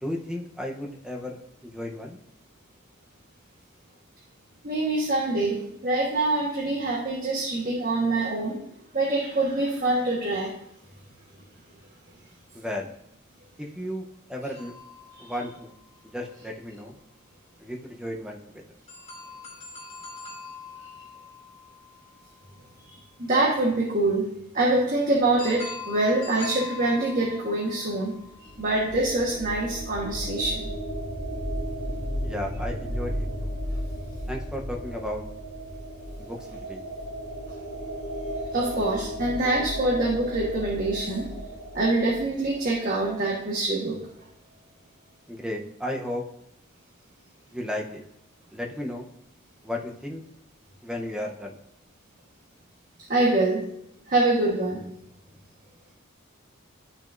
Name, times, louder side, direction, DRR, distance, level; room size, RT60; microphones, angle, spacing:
voice 1, 0.0-2.2 12.5-12.9 13.6-14.7 15.2-15.8 16.1-17.0 17.6-18.6 32.2-33.5 34.3-35.2 36.2-36.8 45.3-46.2 47.5-48.0 48.5-49.1 49.6-50.2 50.8-51.6, left 1 dB, 5° right, 0 dB, 0.8 m, -34 dB
voice 2, 4.6-8.6 8.9-10.5 15.1-15.2 22.8-22.9 23.2-24.3 24.5-28.1 28.4-30.7 38.5-41.3 41.7-44.0 53.1-53.6 54.1-54.8, right 2 dB, 45° right, -4 dB, 1.4 m, -25 dB
sound 1, 14.6-16.3 18.9-22.8 25.4-28.8, left 4 dB, 35° left, 3.2 m, -43 dB
sound 2, 28.2-43.1, equal, 55° left, 2.0 m, -34 dB
12.5 x 6.1 x 2.6 m, 0.78 s
head